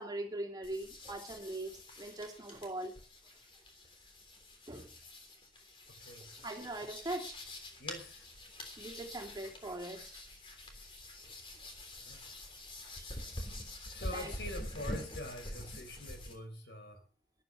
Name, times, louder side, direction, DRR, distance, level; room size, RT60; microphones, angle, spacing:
voice 1, 0.0-2.9 4.7-4.9 6.4-7.4 8.8-10.2 13.0-13.1 14.1-14.3, right 1 dB, 20° right, 2.9 m, -41 dB
sound 1, 0.6-16.3, left 1 dB, 30° left, 3.4 m, -46 dB
voice 2, 6.0-6.3 7.8-8.3 12.0-12.2 13.8-17.0, left 1 dB, 70° left, 4.0 m, -45 dB
13.5 x 11.5 x 5.9 m
head